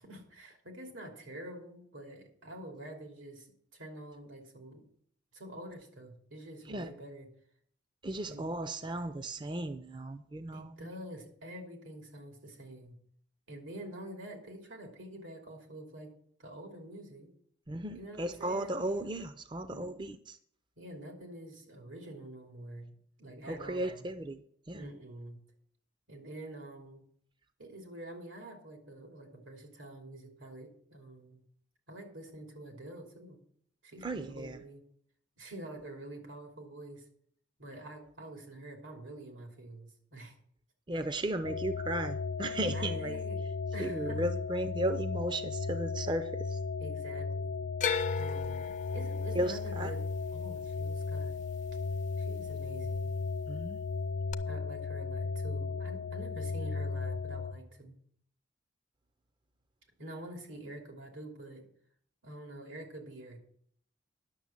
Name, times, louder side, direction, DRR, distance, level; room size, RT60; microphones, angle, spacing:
voice 1, 0.0-3.5 3.7-4.8 5.3-7.3 8.3-8.5 10.5-13.0 13.5-16.1 16.4-17.3 17.9-18.9 19.7-20.0 20.8-24.0 24.7-25.4 26.1-27.0 27.6-31.4 31.9-33.4 33.8-34.8 35.4-37.0 37.6-40.3 42.6-43.4 43.7-44.2 46.8-47.7 48.2-50.0 50.3-51.4 52.2-53.1 54.4-57.9 60.0-61.6 62.2-63.4, right 1 dB, 90° right, 2.9 m, -47 dB
voice 2, 8.0-10.9 17.7-20.4 23.5-24.4 24.7-24.9 34.0-34.6 40.9-43.2 43.8-46.6 49.4-49.9 53.5-53.8, right 1 dB, 25° right, 0.4 m, -35 dB
sound 1, 41.4-57.5, left 4 dB, 90° left, 0.7 m, -35 dB
sound 2, 47.8-52.0 52.3-53.0 54.3-54.4, left 6 dB, 40° left, 0.5 m, -37 dB
10.5 x 6.8 x 7.2 m
head